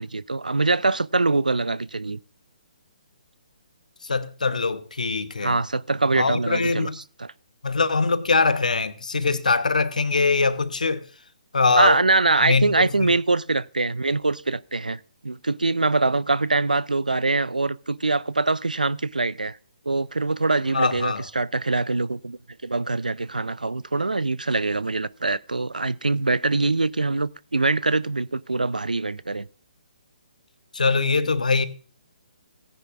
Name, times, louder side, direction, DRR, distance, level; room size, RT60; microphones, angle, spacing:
voice 1, 0.0-2.2 5.4-6.9 7.2-7.3 11.8-19.6 19.9-29.5, right 3 dB, 85° right, 0.4 m, -23 dB
voice 2, 4.0-5.6 6.1-7.0 7.6-11.0 11.5-12.0 12.4-12.7 13.0-13.1 20.7-21.2 30.7-31.7, left 4 dB, 70° left, 1.0 m, -22 dB
17.0 x 10.0 x 2.5 m
figure-of-eight pair, 135°, 4 cm